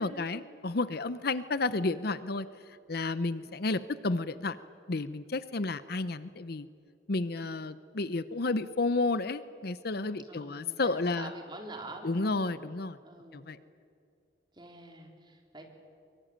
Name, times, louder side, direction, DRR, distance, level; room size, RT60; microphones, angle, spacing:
voice 1, 0.0-2.5 2.9-4.6 4.9-6.7 7.1-11.3 12.0-13.0 13.3-13.6, left 3 dB, 55° left, 14 dB, 0.8 m, -31 dB
voice 2, 10.3-12.5 13.0-13.5 14.5-15.6, right 2 dB, 25° right, 2 dB, 3.7 m, -46 dB
24.0 x 23.5 x 8.8 m, 2.4 s
head